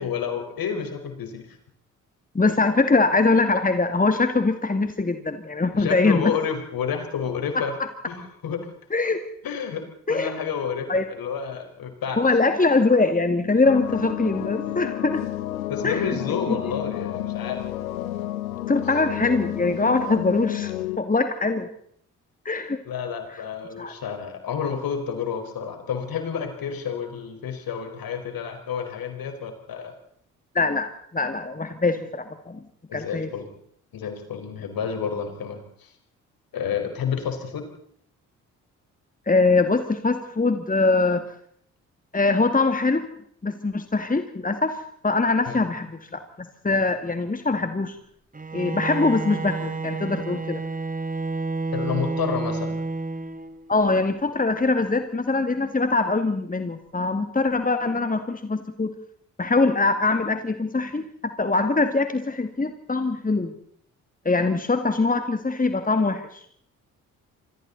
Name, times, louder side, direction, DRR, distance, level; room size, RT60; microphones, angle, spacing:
voice 1, 0.0-1.6 5.8-7.7 8.0-8.7 9.4-12.2 15.7-17.7 22.8-29.9 32.9-33.5 33.9-35.9 36.5-37.7 45.5-45.6 51.7-52.8, left 7 dB, 60° left, 5 dB, 5.0 m, -30 dB
voice 2, 2.3-6.3 7.5-7.9 8.9-9.2 10.1-10.3 10.9-11.0 12.2-15.2 15.8-16.0 16.5-16.6 18.7-20.7 21.0-21.7 22.4-22.8 23.8-23.9 30.5-32.6 32.9-33.3 39.3-41.2 42.1-43.1 43.4-48.0 48.5-50.6 53.7-58.9 59.4-63.5 64.2-66.4, left 3 dB, 20° left, 8 dB, 2.3 m, -23 dB
sound 1, 13.6-21.0, left 14 dB, 85° left, 1.1 m, -31 dB
Bowed string instrument, 48.3-53.7, right 3 dB, 20° right, 1.7 m, -30 dB
27.5 x 23.0 x 4.1 m, 0.64 s
hypercardioid pair, 40°, 40 cm